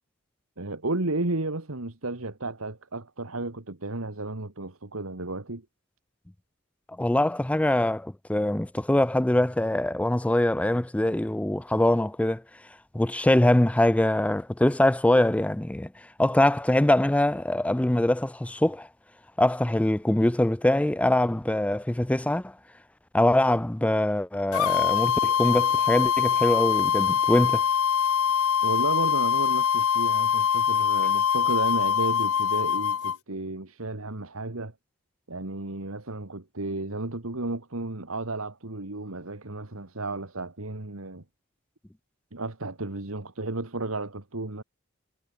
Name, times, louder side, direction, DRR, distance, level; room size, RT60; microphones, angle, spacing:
voice 1, 0.6-5.7 28.6-34.7 35.3-41.2 42.3-44.6, right 2 dB, 75° right, 2.1 m, -33 dB
voice 2, 7.0-12.4 12.9-15.9 16.2-18.9 19.4-22.5 23.1-27.6, left 1 dB, 5° left, 0.4 m, -23 dB
sound 1, 24.5-33.2, left 8 dB, 85° left, 0.6 m, -23 dB
head